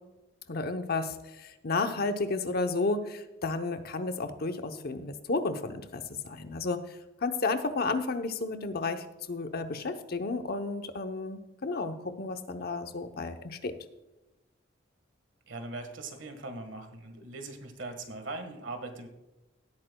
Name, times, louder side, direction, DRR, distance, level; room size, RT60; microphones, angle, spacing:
voice 1, 0.5-13.7, left 3 dB, 55° left, 8 dB, 0.8 m, -32 dB
voice 2, 15.5-19.1, right 2 dB, 70° right, 6 dB, 1.6 m, -40 dB
17.0 x 8.8 x 2.3 m, 1.0 s
head